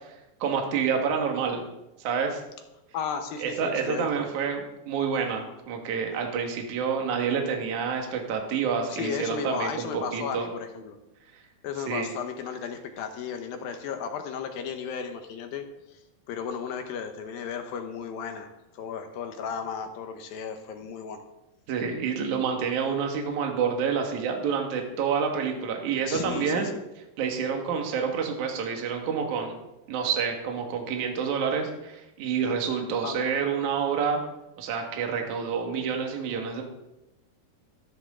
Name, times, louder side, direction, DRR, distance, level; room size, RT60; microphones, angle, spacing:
voice 1, 0.4-1.6 2.0-2.4 3.4-10.5 11.9-12.1 21.7-26.7 27.2-29.6 29.9-34.2 34.6-36.6, right 6 dB, 60° right, 2 dB, 2.7 m, -28 dB
voice 2, 2.9-4.1 8.9-11.0 11.6-16.0 16.3-18.5 18.7-21.2 26.1-26.8 33.0-33.3, left 6 dB, 75° left, 6 dB, 2.6 m, -34 dB
13.5 x 13.0 x 3.7 m, 0.92 s
omnidirectional pair, 4.5 m